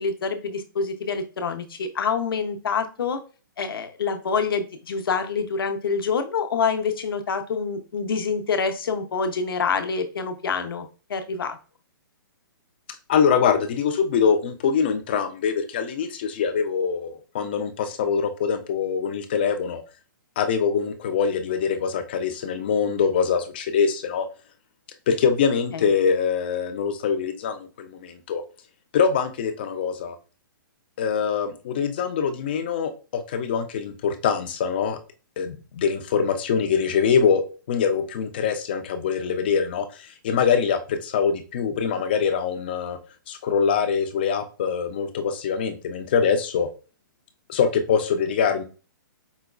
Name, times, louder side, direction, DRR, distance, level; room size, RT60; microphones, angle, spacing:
voice 1, 0.0-3.2 3.6-11.6 25.7-25.8, left 5 dB, 90° left, 8 dB, 0.6 m, -26 dB
voice 2, 13.1-19.8 20.4-24.3 25.1-28.4 28.9-30.2 31.0-35.0 35.4-37.4 37.7-43.0 43.3-46.7 47.5-48.6, left 6 dB, 25° left, 8 dB, 0.3 m, -23 dB
4.7 x 2.3 x 2.2 m, 0.35 s
hypercardioid pair, 170°, 12 cm